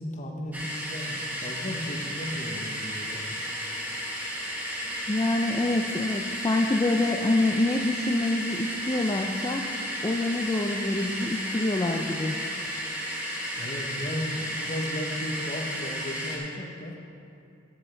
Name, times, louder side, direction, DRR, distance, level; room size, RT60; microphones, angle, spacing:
voice 1, 0.0-3.2 13.6-17.0, left 1 dB, 35° left, 2 dB, 0.9 m, -35 dB
sound 1, 0.5-16.4, equal, 10° right, 1.1 m, -33 dB
voice 2, 5.1-9.7 10.0-12.4, left 2 dB, 20° left, 1 dB, 0.3 m, -26 dB
12.5 x 7.0 x 3.3 m, 2.5 s
head